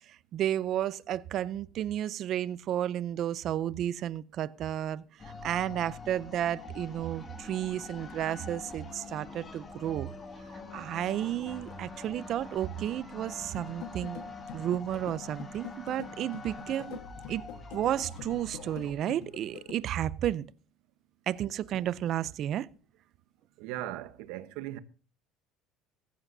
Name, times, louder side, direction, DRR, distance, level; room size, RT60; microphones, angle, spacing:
voice 1, 0.3-5.0 5.4-10.1 10.7-14.2 14.5-17.0 17.3-17.4 17.7-20.5 21.3-22.7, right 11 dB, 45° right, 0.5 m, -32 dB
sound 1, 5.2-18.9, left 3 dB, 25° left, 2.1 m, -45 dB
sound 2, 13.6-19.7, left 11 dB, 85° left, 1.3 m, -46 dB
voice 2, 23.6-24.8, right 14 dB, 75° right, 1.0 m, -38 dB
16.0 x 14.5 x 2.7 m
cardioid pair, 140°, 0 cm